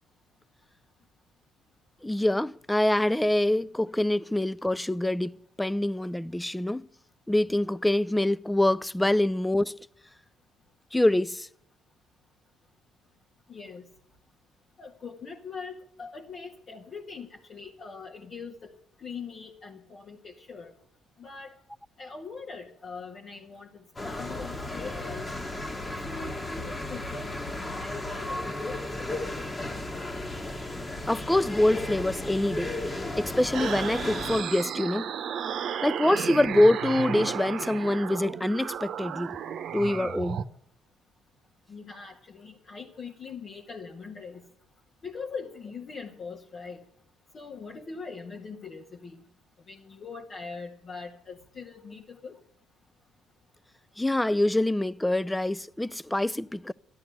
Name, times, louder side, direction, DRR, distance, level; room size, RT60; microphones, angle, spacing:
voice 1, 2.0-6.9 7.3-9.8 10.9-11.5 31.1-32.7 33.2-35.1 35.8-39.4 39.7-40.4 54.0-56.7, left 1 dB, 10° left, 0.5 m, -25 dB
voice 2, 13.5-13.8 14.8-18.7 19.0-20.7 21.2-21.5 22.0-23.7 24.0-25.3 26.0-29.2 41.7-44.4 45.0-46.8 47.3-49.2 49.7-52.3, left 5 dB, 50° left, 1.7 m, -41 dB
sound 1, 24.0-34.4, left 2 dB, 25° left, 1.8 m, -34 dB
sound 2, 33.5-40.4, right 8 dB, 60° right, 0.9 m, -34 dB
12.5 x 12.0 x 7.8 m
hypercardioid pair, 55°, 0 cm